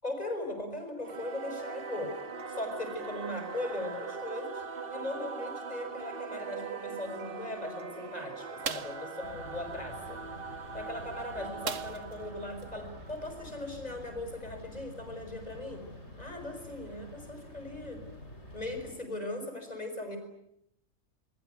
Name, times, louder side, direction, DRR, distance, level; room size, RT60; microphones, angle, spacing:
voice 1, 0.0-2.1 2.5-4.6 4.9-10.2 10.7-15.9 16.2-18.0 18.5-20.2, left 2 dB, 30° left, 5 dB, 6.1 m, -39 dB
Singing / Musical instrument, 1.0-13.9, right 5 dB, 45° right, 1.6 m, -41 dB
sound 1, 8.6-9.0 11.6-12.2 12.6-12.7 13.1-13.3, right 7 dB, 80° right, 1.6 m, -37 dB
sound 2, 9.2-18.9, left 1 dB, 60° left, 7.3 m, -48 dB
28.0 x 21.5 x 9.5 m, 0.79 s
omnidirectional pair, 1.3 m